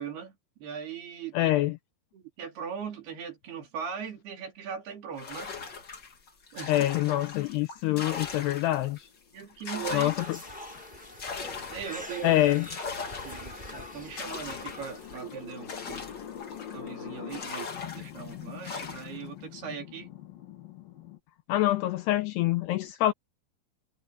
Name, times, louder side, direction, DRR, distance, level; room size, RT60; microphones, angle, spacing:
voice 1, 0.0-1.5 2.1-5.5 6.5-6.7 9.3-10.1 11.7-12.4 13.2-15.7 16.7-20.1, right 7 dB, 60° right, 5.2 m, -39 dB
voice 2, 1.3-1.7 6.7-9.1 9.9-10.1 12.2-12.7 21.5-23.1, left 15 dB, 85° left, 2.4 m, -25 dB
sound 1, 5.2-9.0 9.4-16.9 17.3-19.3, left 5 dB, 35° left, 1.9 m, -40 dB
sound 2, 8.9-21.2, left 10 dB, 55° left, 3.3 m, -46 dB
sound 3, 10.2-15.4, left 1 dB, 10° left, 6.8 m, -44 dB
omnidirectional pair, 5.4 m